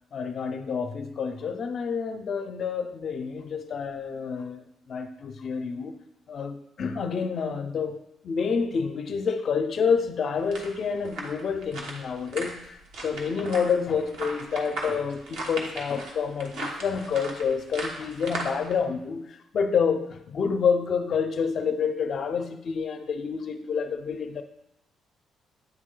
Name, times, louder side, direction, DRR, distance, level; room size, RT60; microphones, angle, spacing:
voice 1, 0.1-5.9 6.3-8.0 8.2-24.4, left 6 dB, 55° left, 0.6 m, -28 dB
sound 1, 10.4-18.8, right 2 dB, 85° right, 1.1 m, -37 dB
9.0 x 3.2 x 3.8 m
cardioid pair, 90°, 0 cm